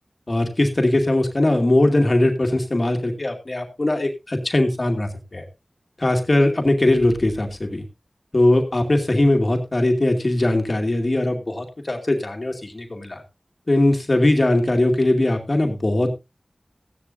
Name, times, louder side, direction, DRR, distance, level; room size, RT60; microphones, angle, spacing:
voice 1, 0.3-5.4 6.0-7.8 8.3-13.2 13.7-16.1, left 1 dB, 55° left, 4 dB, 2.2 m, -20 dB
15.5 x 11.0 x 2.7 m, 0.25 s
wide cardioid pair, 40°, 0 cm